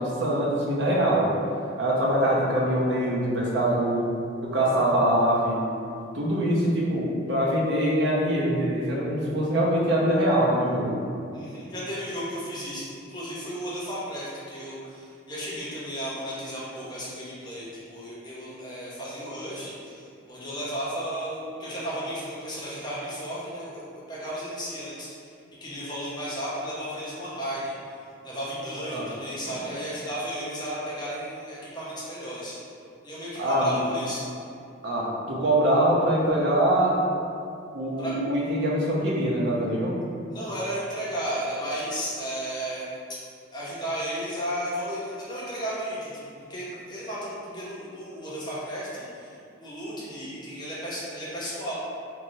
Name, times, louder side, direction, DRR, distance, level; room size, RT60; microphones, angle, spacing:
voice 1, 0.0-1.3 1.8-4.1 4.4-5.7 6.1-11.0 28.9-29.1 33.3-33.8 34.8-37.0 37.7-39.9, right 1 dB, 60° right, -4 dB, 0.6 m, -23 dB
voice 2, 11.3-23.8 24.1-25.1 25.6-27.7 28.2-32.6 33.0-34.2 38.0-38.2 40.3-42.9 43.5-49.3 49.6-51.7, equal, 20° left, -8 dB, 0.6 m, -34 dB
3.1 x 2.7 x 2.6 m, 2.5 s
head